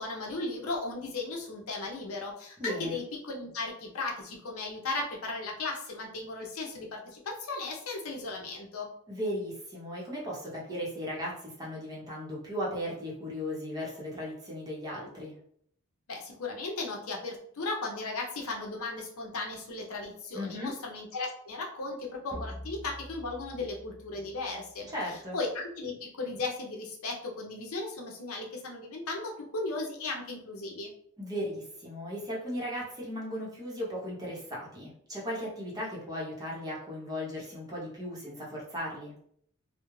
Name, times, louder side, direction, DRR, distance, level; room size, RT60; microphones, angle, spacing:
voice 1, 0.0-8.9 16.1-24.9 25.3-30.9, left 3 dB, 75° left, 0 dB, 0.6 m, -36 dB
voice 2, 2.6-3.0 9.1-15.3 20.3-20.7 24.9-25.4 31.2-39.1, equal, 20° right, -5 dB, 0.8 m, -36 dB
sound 1, 22.3-24.9, equal, 10° left, 0.4 m, -45 dB
2.3 x 2.1 x 3.1 m, 0.64 s
head